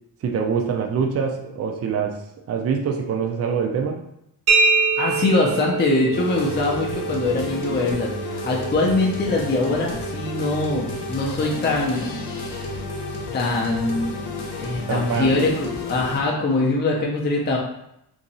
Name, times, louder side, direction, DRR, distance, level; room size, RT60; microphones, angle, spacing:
voice 1, 0.2-2.2 2.5-4.0 14.9-15.3, right 6 dB, 40° right, 2 dB, 0.4 m, -24 dB
sound 1, 4.5-12.0, right 4 dB, 70° right, 0.8 m, -26 dB
voice 2, 4.7-12.1 13.3-14.1 14.6-17.6, left 2 dB, 30° left, -2 dB, 0.5 m, -23 dB
sound 2, 6.1-16.2, left 3 dB, 85° left, 0.7 m, -32 dB
2.7 x 2.6 x 4.0 m, 0.80 s
wide cardioid pair, 165°, 38 cm